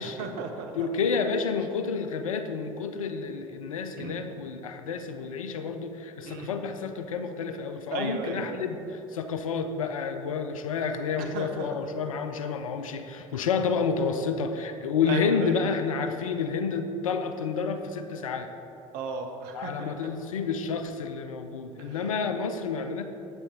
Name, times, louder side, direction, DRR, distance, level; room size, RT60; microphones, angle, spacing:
voice 1, 0.0-0.7 4.0-4.2 6.2-6.6 7.9-8.7 11.3-11.8 15.1-15.7 18.9-19.9 21.8-22.0, right 4 dB, 60° right, 4 dB, 0.9 m, -35 dB
voice 2, 0.8-18.5 19.5-23.0, left 5 dB, 80° left, 8 dB, 0.5 m, -30 dB
7.9 x 5.8 x 3.9 m, 2.8 s
figure-of-eight pair, 60°, 17 cm